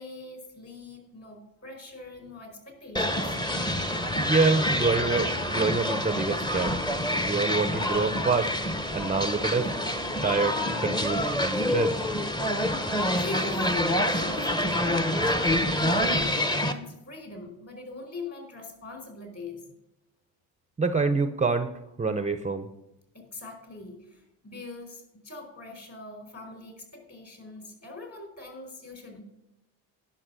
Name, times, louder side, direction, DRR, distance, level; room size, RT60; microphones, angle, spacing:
voice 1, 0.0-3.4 13.1-19.6 23.1-29.2, left 3 dB, 35° left, 3 dB, 4.5 m, -42 dB
sound 1, 3.0-16.7, left 1 dB, 10° left, 1.1 m, -27 dB
voice 2, 4.3-6.8 7.2-8.5 8.9-9.7 10.2-12.0 20.8-21.7 22.0-22.7, right 4 dB, 20° right, 10 dB, 0.7 m, -26 dB
11.0 x 6.0 x 7.6 m, 0.88 s
supercardioid pair, 70°, 39 cm